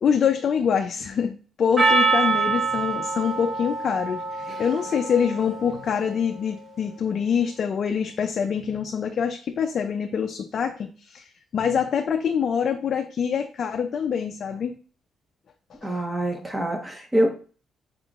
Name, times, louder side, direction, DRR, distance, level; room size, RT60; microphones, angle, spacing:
voice 1, 0.0-14.8 15.8-16.0, left 7 dB, 55° left, 0.4 m, -25 dB
Percussion, 1.8-6.4, right 4 dB, 40° right, 1.4 m, -25 dB
voice 2, 15.8-17.3, right 1 dB, 15° right, 1.2 m, -25 dB
5.0 x 3.6 x 2.4 m
cardioid pair, 90°, 0 cm